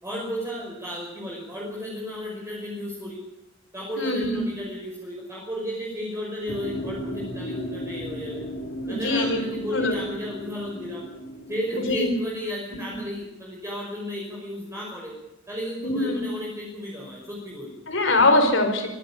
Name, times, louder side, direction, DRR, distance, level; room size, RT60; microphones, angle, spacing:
voice 1, 0.0-3.2 3.7-8.4 8.9-11.0 11.5-15.1 15.5-17.7, equal, 15° right, -4 dB, 5.8 m, -33 dB
voice 2, 4.0-4.4 8.8-9.4 9.7-10.0 11.9-12.1 15.8-16.3 17.9-18.9, left 2 dB, 65° left, 6 dB, 5.0 m, -22 dB
sound 1, 6.5-12.0, equal, 80° left, 3.8 m, -36 dB
24.0 x 16.0 x 8.7 m, 0.93 s
head